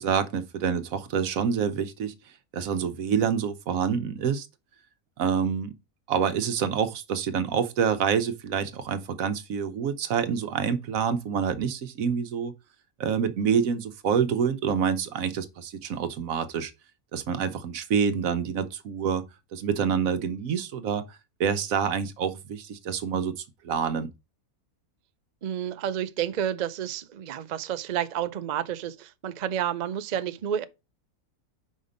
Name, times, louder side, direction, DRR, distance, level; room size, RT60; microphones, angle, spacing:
voice 1, 0.0-2.1 2.5-4.5 5.2-5.7 6.1-12.5 13.0-16.7 17.1-19.2 19.5-24.1, right 7 dB, 65° right, 1.2 m, -27 dB
voice 2, 25.4-30.6, right 9 dB, 90° right, 0.3 m, -30 dB
5.4 x 5.1 x 5.0 m
omnidirectional pair, 1.6 m